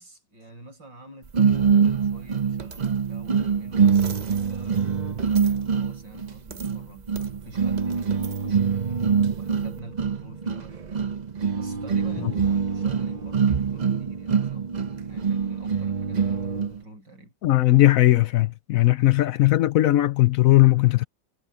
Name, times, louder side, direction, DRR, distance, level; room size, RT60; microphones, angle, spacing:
voice 1, 0.0-10.8 11.5-14.7 15.0-17.3, right 1 dB, 75° right, 6.0 m, -47 dB
sound 1, 1.3-16.8, right 6 dB, 55° right, 0.5 m, -24 dB
voice 2, 17.4-21.0, left 16 dB, 75° left, 0.8 m, -18 dB
omnidirectional pair, 2.0 m